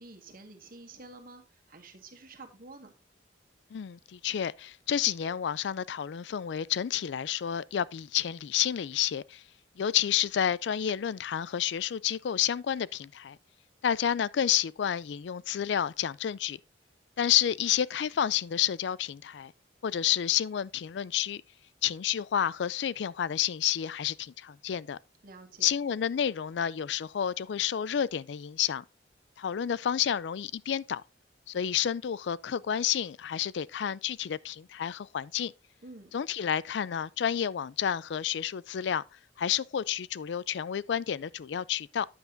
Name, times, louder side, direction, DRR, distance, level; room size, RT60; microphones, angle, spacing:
voice 1, 0.0-2.9 25.2-25.7 35.8-36.2, right 2 dB, 50° right, 1.7 m, -49 dB
voice 2, 3.7-9.4 9.8-13.4 13.8-16.6 17.2-19.5 19.8-21.4 21.8-25.0 25.6-28.8 29.4-31.0 31.5-35.5 36.1-39.0 39.4-42.1, left 9 dB, 70° left, 0.4 m, -30 dB
9.4 x 7.8 x 2.6 m
head